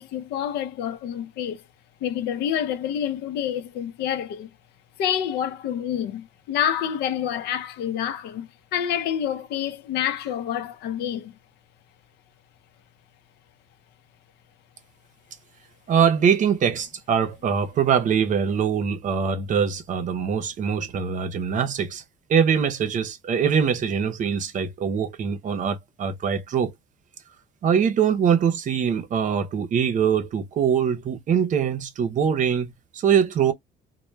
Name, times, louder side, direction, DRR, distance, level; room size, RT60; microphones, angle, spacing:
voice 1, 0.0-1.6 2.0-4.5 5.0-11.4, left 9 dB, 80° left, 0.6 m, -28 dB
voice 2, 15.9-22.0 22.3-26.7 27.6-33.5, right 7 dB, 50° right, 0.6 m, -23 dB
2.1 x 2.1 x 3.1 m
cardioid pair, 110°, 17 cm